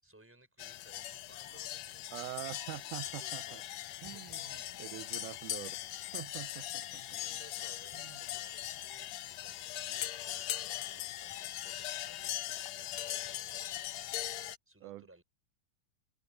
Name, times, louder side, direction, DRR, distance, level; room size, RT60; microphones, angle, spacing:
voice 1, 0.0-2.2 2.9-4.9 7.0-12.4 12.7-14.2 14.7-15.2, right 1 dB, 5° right, 6.4 m, -61 dB
sound 1, 0.6-14.6, left 13 dB, 90° left, 1.5 m, -40 dB
voice 2, 2.1-3.6 4.0-4.4 4.8-5.8 6.1-7.0 8.0-8.2 14.8-15.2, right 17 dB, 85° right, 1.8 m, -44 dB
open air
omnidirectional pair, 4.2 m